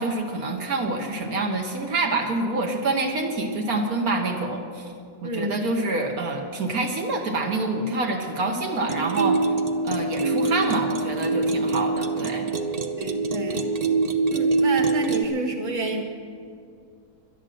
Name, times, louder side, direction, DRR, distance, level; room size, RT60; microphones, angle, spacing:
voice 1, 0.0-4.9 5.2-9.6 9.8-12.5, right 2 dB, 65° right, 2 dB, 1.5 m, -27 dB
voice 2, 5.2-5.6 13.0-13.7 14.2-16.0, right 1 dB, 20° right, 0 dB, 1.5 m, -29 dB
sound 1, 8.9-15.2, right 3 dB, 40° right, 0.6 m, -24 dB
11.0 x 11.0 x 7.6 m, 2.4 s
omnidirectional pair, 1.7 m